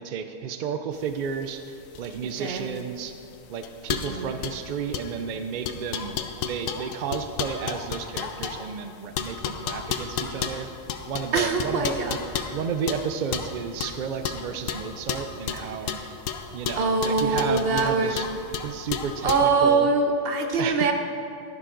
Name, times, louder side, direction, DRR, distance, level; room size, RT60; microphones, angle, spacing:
voice 1, 0.0-3.1 3.5-10.7 11.1-11.9 12.5-16.0 16.5-18.3 18.6-19.9 20.6-20.9, right 6 dB, 70° right, 8 dB, 0.4 m, -32 dB
sound 1, 1.0-19.5, left 7 dB, 75° left, 1.0 m, -33 dB
voice 2, 2.4-2.7 4.1-4.3 11.3-12.6 15.8-16.1 16.8-18.2 19.2-20.9, right 4 dB, 50° right, 4 dB, 1.0 m, -24 dB
11.5 x 10.5 x 3.8 m, 2.5 s
omnidirectional pair, 1.4 m